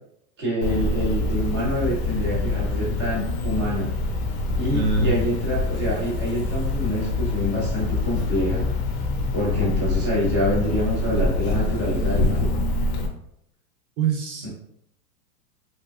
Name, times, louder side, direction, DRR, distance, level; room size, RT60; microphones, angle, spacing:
voice 1, 0.4-3.9 4.6-8.6 9.3-12.5, equal, 20° right, -6 dB, 0.3 m, -26 dB
Cricket, 0.6-13.1, left 3 dB, 45° left, 0.5 m, -25 dB
voice 2, 4.7-5.1 14.0-14.5, right 4 dB, 70° right, 0 dB, 0.6 m, -23 dB
3.2 x 2.2 x 2.2 m, 0.74 s
supercardioid pair, 170°, 45 cm